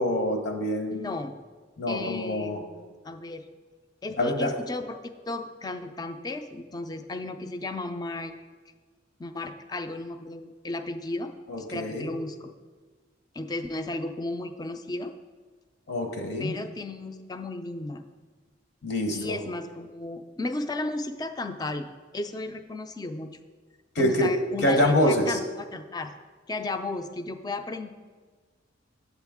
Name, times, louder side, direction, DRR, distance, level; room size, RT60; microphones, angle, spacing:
voice 1, 0.0-1.1 1.8-2.6 4.2-4.5 11.5-12.1 15.9-16.5 18.8-19.4 23.9-24.3 24.6-25.4, left 1 dB, 60° left, 4 dB, 0.8 m, -25 dB
voice 2, 0.9-1.4 1.9-3.4 4.0-5.0 5.3-8.3 9.2-11.3 11.6-12.5 13.3-15.1 16.4-18.0 19.1-21.9 22.1-23.3 24.0-26.1 26.5-27.9, left 2 dB, 20° left, 8 dB, 0.4 m, -34 dB
8.1 x 7.9 x 3.5 m, 1.4 s
head